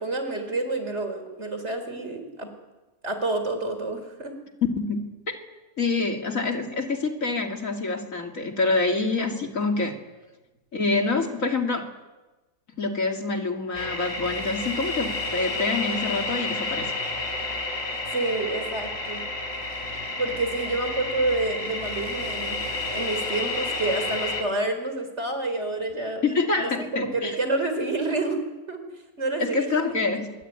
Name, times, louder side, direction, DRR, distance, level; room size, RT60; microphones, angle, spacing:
voice 1, 0.0-2.5 3.0-4.4 18.1-19.2 20.2-22.6 22.9-28.4 28.7-28.8 29.2-29.7, right 2 dB, 45° right, 7 dB, 4.5 m, -28 dB
voice 2, 4.8-5.4 5.8-10.0 10.7-11.9 12.8-16.9 26.2-27.4 29.4-30.3, left 3 dB, 55° left, 4 dB, 3.1 m, -26 dB
sound 1, 13.7-24.4, left 2 dB, 40° left, 4.7 m, -30 dB
26.5 x 23.5 x 9.0 m, 1.1 s
omnidirectional pair, 1.7 m